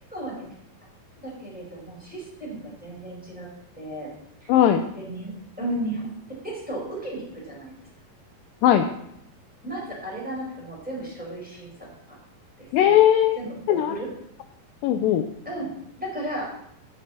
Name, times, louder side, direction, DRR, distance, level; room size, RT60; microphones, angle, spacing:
voice 1, 0.1-0.5 1.2-3.5 3.8-4.1 4.4-4.5 5.0-5.3 5.6-6.1 6.4-7.7 9.6-11.9 12.6-12.9 13.3-13.5 13.8-14.1 15.4-15.7 16.0-16.5, right 1 dB, ahead, -4 dB, 4.3 m, -34 dB
voice 2, 4.5-4.9 8.6-8.9 12.7-13.4 13.7-14.0 14.8-15.3, left 10 dB, 80° left, 6 dB, 2.1 m, -18 dB
16.0 x 6.7 x 4.2 m, 0.75 s
omnidirectional pair, 4.4 m